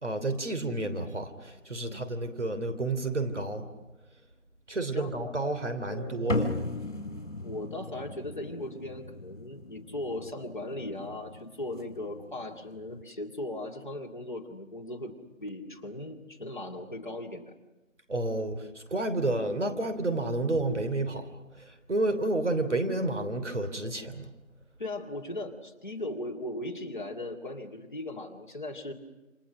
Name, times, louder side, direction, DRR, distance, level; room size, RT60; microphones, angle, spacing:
voice 1, 0.0-3.7 4.7-6.5 18.1-24.3, right 2 dB, 60° right, 8 dB, 3.2 m, -30 dB
voice 2, 4.9-5.3 5.9-6.3 7.4-15.1 15.4-17.5 24.8-28.9, left 1 dB, 35° left, 0 dB, 2.3 m, -38 dB
sound 1, 6.3-13.0, left 2 dB, 65° left, 3.5 m, -37 dB
28.5 x 27.0 x 6.3 m, 1.1 s
figure-of-eight pair, 180°, 40 cm